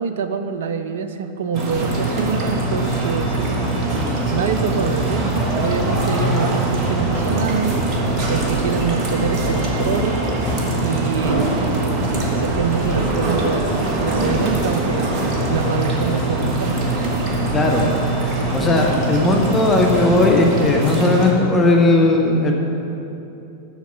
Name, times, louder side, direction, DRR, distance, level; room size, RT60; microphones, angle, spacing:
voice 1, 0.0-3.6 4.3-7.8 8.3-10.2 10.8-11.5 12.3-13.7 14.0-15.1 15.5-16.7, right 6 dB, 60° right, 9 dB, 0.5 m, -25 dB
sound 1, 1.5-21.3, right 2 dB, 35° right, 1.5 m, -23 dB
sound 2, 1.7-20.7, right 1 dB, 20° right, 1.4 m, -28 dB
voice 2, 17.5-17.9 18.5-22.5, left 2 dB, 15° left, 0 dB, 1.0 m, -17 dB
8.1 x 6.5 x 6.4 m, 2.8 s
figure-of-eight pair, 90°, 0 cm